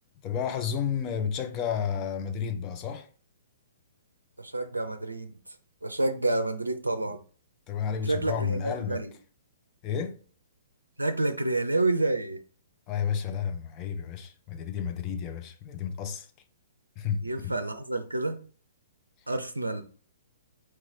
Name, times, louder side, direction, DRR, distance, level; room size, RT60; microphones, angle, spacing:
voice 1, 0.2-3.1 7.7-9.0 9.8-10.2 12.9-16.3 17.0-17.5, left 7 dB, 25° left, 0.6 m, -31 dB
voice 2, 4.4-5.3 5.8-7.2 8.0-9.1 11.0-12.4 17.2-18.4 19.3-19.8, right 2 dB, 80° right, 0.5 m, -28 dB
4.6 x 3.0 x 3.6 m
figure-of-eight pair, 120°, 0 cm